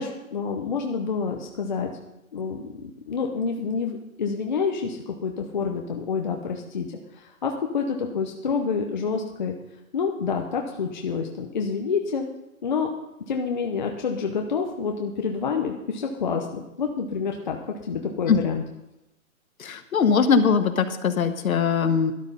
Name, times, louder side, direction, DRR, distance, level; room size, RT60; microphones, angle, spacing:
voice 1, 0.0-1.9 2.3-6.9 7.1-9.5 9.9-12.3 12.6-12.9 13.3-17.6 17.8-18.6, left 5 dB, 35° left, 2 dB, 0.8 m, -28 dB
voice 2, 19.6-22.1, left 6 dB, 75° left, 7 dB, 1.2 m, -21 dB
12.5 x 10.5 x 5.3 m, 0.93 s
hypercardioid pair, 175°, 42 cm